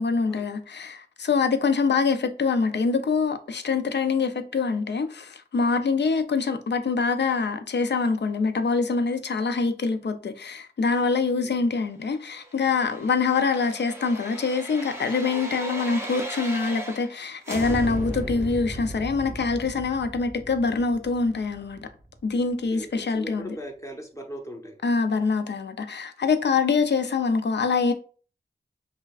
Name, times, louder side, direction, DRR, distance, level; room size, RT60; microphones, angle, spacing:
voice 1, 0.0-21.8 22.2-23.6 24.8-27.9, left 4 dB, 70° left, 0.5 m, -25 dB
sound 1, 12.4-17.2 17.4-22.3 22.7-22.8, right 1 dB, 15° right, 0.8 m, -36 dB
voice 2, 23.1-24.8, equal, 15° left, 1.0 m, -38 dB
5.6 x 2.2 x 2.4 m
cardioid pair, 50°, 18 cm